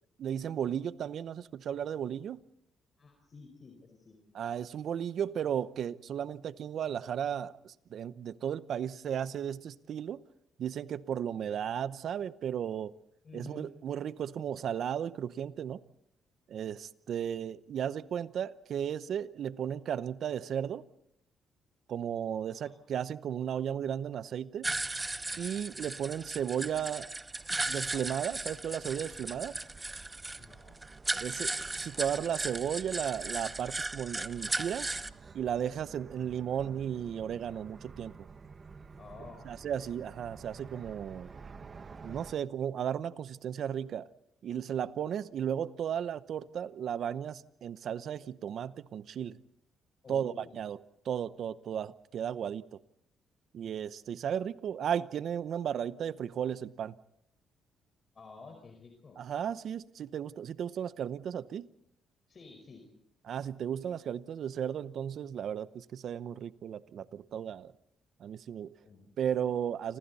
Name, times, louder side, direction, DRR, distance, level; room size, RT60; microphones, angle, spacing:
voice 1, 0.2-2.4 4.3-10.2 10.6-12.9 13.3-15.8 16.5-20.8 21.9-24.7 25.4-27.1 27.7-29.5 31.2-34.9 35.3-38.1 39.5-41.3 42.0-44.1 44.4-49.4 50.1-50.8 51.0-52.8 53.5-57.0 59.2-61.7 63.3-67.7 68.2-68.7 69.2-70.0, right 9 dB, 65° right, 0.8 m, -35 dB
voice 2, 3.0-4.2 13.2-13.7 22.5-22.7 30.4-30.8 39.0-39.4 50.0-50.6 58.1-59.2 62.3-62.8 68.8-69.1, left 4 dB, 40° left, 4.9 m, -51 dB
sound 1, 24.6-35.1, right 2 dB, 20° right, 0.9 m, -36 dB
sound 2, 27.4-42.3, right 5 dB, 40° right, 1.2 m, -51 dB
29.0 x 26.5 x 4.2 m
cardioid pair, 90°, 0 cm